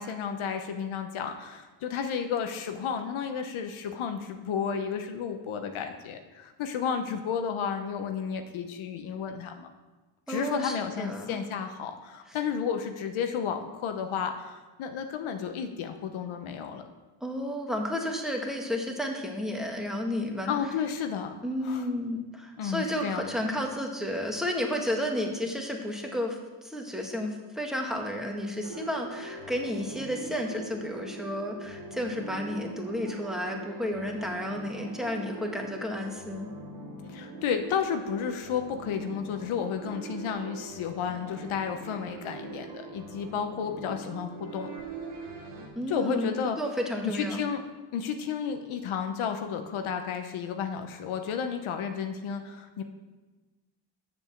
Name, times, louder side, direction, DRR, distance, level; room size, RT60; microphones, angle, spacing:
voice 1, 0.0-9.7 10.3-16.8 20.5-21.3 21.6-21.8 22.6-23.5 37.1-44.7 45.9-46.6 47.0-47.6 47.9-52.8, left 7 dB, 75° left, 6 dB, 0.9 m, -32 dB
voice 2, 10.3-11.4 12.3-12.4 17.2-20.5 21.4-36.5 45.7-46.3 46.6-47.4, left 1 dB, ahead, 1 dB, 1.7 m, -32 dB
sound 1, 28.6-45.7, right 3 dB, 90° right, 2.1 m, -42 dB
7.2 x 5.4 x 7.2 m, 1.2 s
cardioid pair, 65°, 49 cm